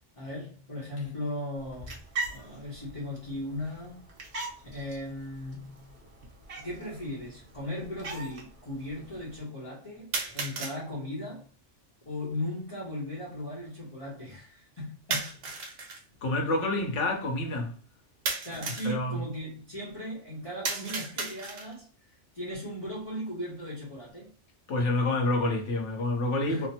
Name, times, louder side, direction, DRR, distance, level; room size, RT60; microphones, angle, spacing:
voice 1, 0.2-2.0 2.3-4.0 4.7-5.9 6.6-11.5 12.1-15.5 18.4-21.9 22.3-24.3 26.5-26.7, left 1 dB, 30° left, 0.9 m, -37 dB
sound 1, 1.6-9.4, right 3 dB, 65° right, 1.2 m, -42 dB
sound 2, 5.8-5.9 6.8-6.9 10.1-10.8 15.1-16.0 18.3-19.0 20.6-21.8, right 4 dB, 90° right, 1.1 m, -34 dB
voice 2, 16.2-17.7 18.8-19.2 24.7-26.7, left 2 dB, 75° left, 1.2 m, -28 dB
3.3 x 2.1 x 2.7 m
omnidirectional pair, 1.2 m